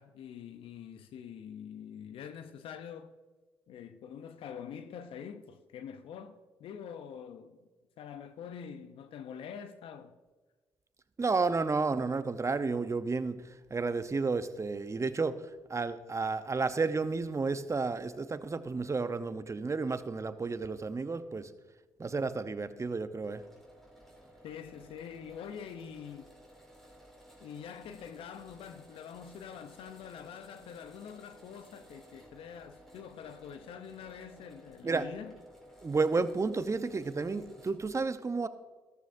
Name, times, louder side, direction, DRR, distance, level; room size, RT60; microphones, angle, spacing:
voice 1, 0.0-3.1 3.7-7.6 8.0-10.2 24.4-26.4 27.4-35.3, left 8 dB, 70° left, 0.7 m, -45 dB
voice 2, 11.2-13.4 13.7-15.4 15.7-21.5 22.0-23.4 34.8-35.1 35.8-38.5, right 4 dB, 30° right, 0.9 m, -31 dB
sound 1, 23.2-37.9, equal, 5° left, 4.0 m, -56 dB
13.5 x 13.5 x 2.7 m
hypercardioid pair, 45°, 10 cm